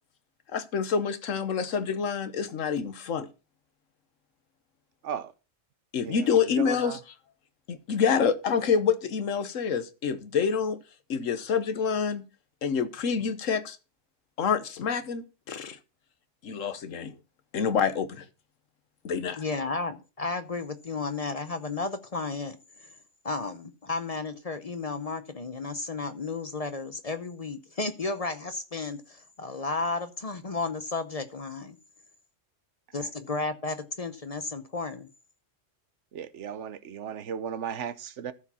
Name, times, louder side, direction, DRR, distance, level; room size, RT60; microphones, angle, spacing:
voice 1, 0.5-3.3 5.9-7.0 7.7-10.8 11.1-12.2 12.6-13.8 14.4-15.8 16.4-17.1 17.5-18.2 19.0-19.4, left 6 dB, 85° left, 1.4 m, -27 dB
voice 2, 6.0-7.0 33.0-33.1 36.1-38.3, right 8 dB, 70° right, 1.1 m, -36 dB
voice 3, 19.4-22.9 23.2-31.8 32.9-35.1, left 3 dB, 35° left, 0.7 m, -33 dB
13.5 x 4.9 x 5.5 m
omnidirectional pair, 1.3 m